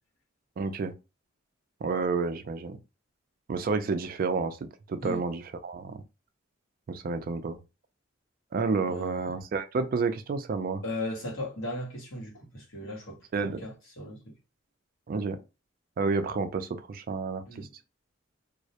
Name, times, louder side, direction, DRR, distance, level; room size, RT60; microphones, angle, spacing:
voice 1, 0.6-0.9 1.8-2.8 3.5-4.6 4.9-6.0 6.9-7.6 8.5-10.8 13.3-13.6 15.1-15.4 16.0-17.7, right 4 dB, 45° right, 0.3 m, -30 dB
voice 2, 8.9-9.3 10.8-13.2 13.6-14.3 17.5-17.7, left 1 dB, 75° left, 1.0 m, -37 dB
2.3 x 2.0 x 2.8 m
head